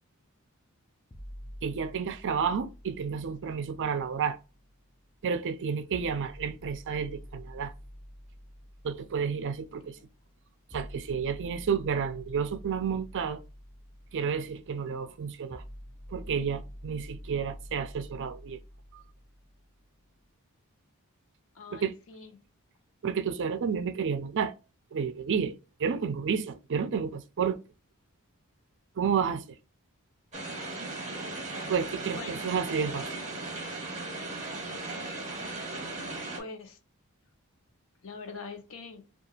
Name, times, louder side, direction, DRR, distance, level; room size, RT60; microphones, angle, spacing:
sound 1, 1.1-5.1 5.9-19.9, equal, 15° left, 0.3 m, -48 dB
voice 1, 1.6-4.4 5.2-7.7 8.8-10.0 10.7-13.4 14.1-15.6 16.1-18.6 18.9-19.0 21.7-21.9 23.0-24.5 24.9-27.6 29.0-29.4 31.7-33.2, right 6 dB, 55° right, 0.4 m, -31 dB
voice 2, 21.5-22.3 32.0-32.5 36.4-36.8 38.0-39.0, left 4 dB, 65° left, 0.7 m, -44 dB
sound 2, 30.3-36.4, right 2 dB, 30° right, 0.8 m, -37 dB
2.8 x 2.4 x 2.7 m
head